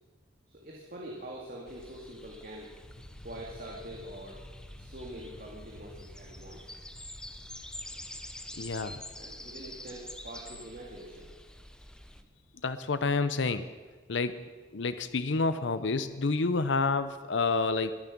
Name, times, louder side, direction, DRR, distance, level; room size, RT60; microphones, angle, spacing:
voice 1, 0.5-2.7 3.2-4.4 4.8-6.8 9.2-11.3, right 1 dB, 45° right, -3 dB, 2.1 m, -44 dB
sound 1, 1.7-12.2, left 1 dB, 5° left, 0.6 m, -47 dB
sound 2, 2.8-9.3, left 1 dB, 90° left, 4.6 m, -52 dB
voice 2, 8.6-9.0 12.6-13.6 14.1-14.4 14.7-17.9, left 3 dB, 65° left, 12 dB, 0.7 m, -29 dB
22.0 x 9.0 x 6.0 m, 1.3 s
head